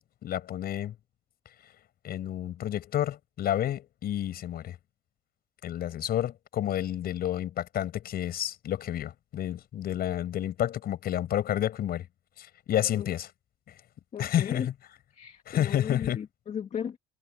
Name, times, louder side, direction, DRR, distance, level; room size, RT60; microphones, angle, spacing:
voice 1, 0.2-0.9 2.0-4.8 5.6-12.1 12.4-13.3 14.2-14.7 15.5-16.2, left 11 dB, 50° left, 6.1 m, -30 dB
voice 2, 14.1-14.7 15.2-17.0, left 8 dB, 35° left, 1.9 m, -36 dB
cardioid pair, 150°, 19 cm